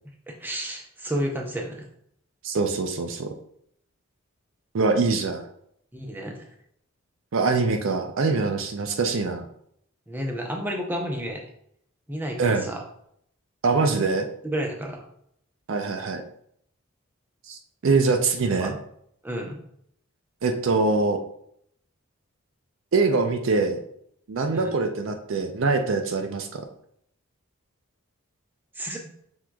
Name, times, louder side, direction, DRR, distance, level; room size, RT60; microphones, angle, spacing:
voice 1, 0.3-1.9 5.9-6.5 10.1-11.4 12.1-12.8 14.4-15.1 18.6-18.7 19.2-19.6 24.5-24.7 28.7-29.0, equal, 10° right, 1 dB, 0.6 m, -31 dB
voice 2, 2.4-3.3 4.7-5.4 7.3-9.5 12.4-12.7 13.6-14.3 15.7-16.2 17.5-18.7 20.4-21.2 22.9-23.8 24.3-26.7, right 3 dB, 60° right, 5 dB, 0.5 m, -23 dB
6.0 x 3.6 x 2.3 m, 0.70 s
head